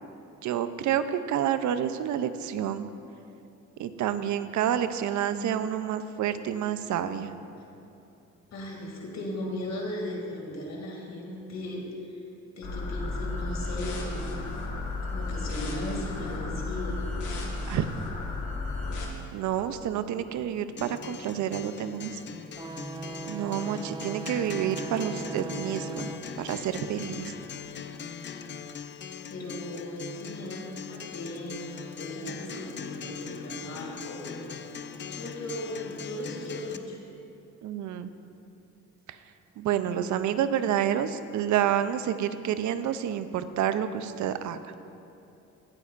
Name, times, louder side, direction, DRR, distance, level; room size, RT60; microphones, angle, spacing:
voice 1, 0.4-2.9 3.8-7.3 17.7-17.9 19.3-22.2 23.3-26.1 26.4-27.3 37.6-38.1 39.1-39.2 39.6-44.7, right 10 dB, 75° right, 11 dB, 0.6 m, -29 dB
voice 2, 8.5-11.9 12.6-14.4 15.0-17.0 29.3-34.4 34.8-37.0, left 1 dB, 60° left, -1 dB, 2.4 m, -37 dB
sound 1, 12.6-19.0, left 3 dB, 85° left, 1.6 m, -33 dB
Acoustic guitar, 20.8-36.8, left 7 dB, 40° left, 0.5 m, -40 dB
sound 2, 22.6-27.7, right 3 dB, 15° right, 0.5 m, -39 dB
16.5 x 9.6 x 2.5 m, 2.8 s
cardioid pair, 90°, 30 cm